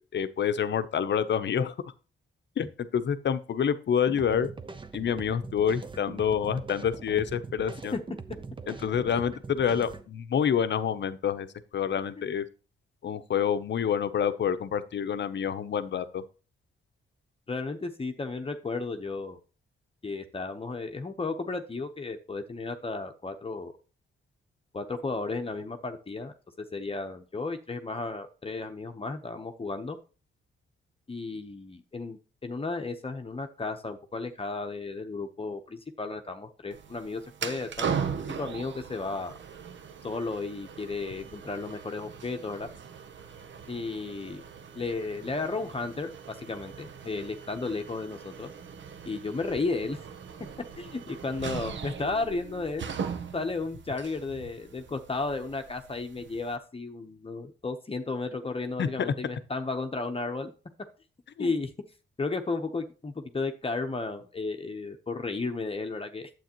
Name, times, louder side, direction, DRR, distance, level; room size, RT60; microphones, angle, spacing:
voice 1, 0.0-1.7 2.6-4.5 4.9-8.0 8.7-11.5 11.7-12.4 13.0-16.2 58.8-58.9 61.4-61.5, left 8 dB, 60° left, 11 dB, 0.8 m, -27 dB
sound 1, 4.1-10.1, right 4 dB, 25° right, 0.7 m, -42 dB
voice 2, 17.5-19.4 20.0-23.7 24.7-30.0 31.1-37.9 38.4-39.3 40.0-42.7 43.7-44.4 44.8-48.5 49.1-50.0 50.8-52.8 53.3-60.5 61.4-61.7 62.2-66.3, left 3 dB, 25° left, 5 dB, 0.9 m, -34 dB
sound 2, 36.7-56.6, right 6 dB, 65° right, 0.8 m, -40 dB
9.2 x 7.7 x 3.0 m, 0.35 s
cardioid pair, 75°, 21 cm